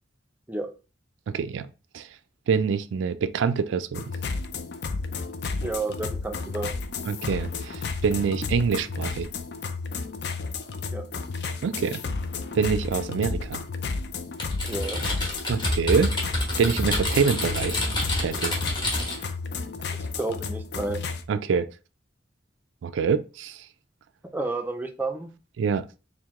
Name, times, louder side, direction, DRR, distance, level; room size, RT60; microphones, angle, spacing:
voice 1, 1.3-1.7 1.9-2.0 2.5-4.0 7.1-9.3 11.6-12.0 12.5-13.6 15.5-17.8 18.2-18.5 21.3-21.7 22.8-23.6 25.6-25.8, right 6 dB, 80° right, 0.3 m, -25 dB
sound 1, 3.9-21.2, left 4 dB, 60° left, 0.4 m, -32 dB
voice 2, 5.6-6.7 10.9-11.0 14.7-15.1 19.9-21.0 24.3-25.3, right 2 dB, 10° right, 0.4 m, -31 dB
Typing, 14.4-19.3, left 1 dB, 25° left, 1.0 m, -28 dB
4.5 x 2.1 x 3.5 m
head